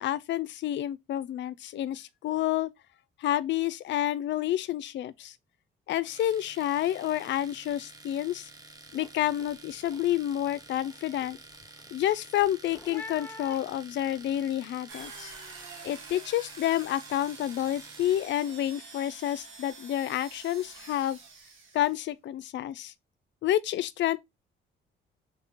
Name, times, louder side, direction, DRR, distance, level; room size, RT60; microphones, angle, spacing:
voice 1, 0.0-2.7 3.2-5.3 5.9-8.5 8.9-11.4 11.9-15.3 15.8-21.2 21.7-22.9 23.4-24.2, left 12 dB, 65° left, 0.4 m, -29 dB
Domestic sounds home sounds, 6.1-18.4, right 3 dB, 20° right, 0.6 m, -50 dB
sound 1, 7.2-7.3 7.6-8.0 8.4-14.4, left 3 dB, 10° left, 0.9 m, -49 dB
sound 2, 14.9-22.0, right 4 dB, 75° right, 1.2 m, -47 dB
3.3 x 2.8 x 3.5 m
cardioid pair, 90°, 20 cm